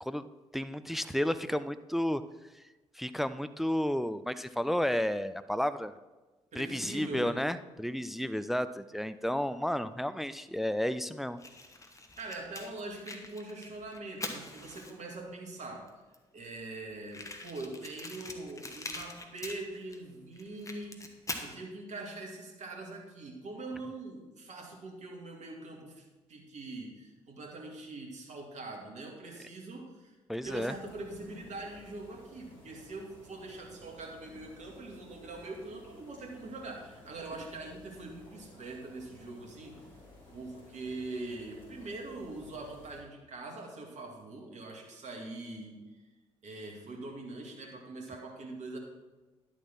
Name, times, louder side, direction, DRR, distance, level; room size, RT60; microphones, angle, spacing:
voice 1, 0.5-2.2 3.0-6.0 6.6-11.4 30.3-30.7, equal, ahead, 13 dB, 0.4 m, -32 dB
voice 2, 6.5-7.4 12.2-15.9 16.3-21.0 21.4-30.1 30.4-39.8 40.3-45.8 46.4-48.8, right 2 dB, 50° right, 1 dB, 2.1 m, -43 dB
Fire, 11.4-15.2 15.9-16.0 16.1-16.2 16.4-16.5 17.1-20.0 20.3-21.5, left 2 dB, 20° left, 1.3 m, -43 dB
sound 1, 30.4-43.0, left 1 dB, 60° left, 3.4 m, -55 dB
11.0 x 7.1 x 4.5 m, 1.2 s
figure-of-eight pair, 40°, 16 cm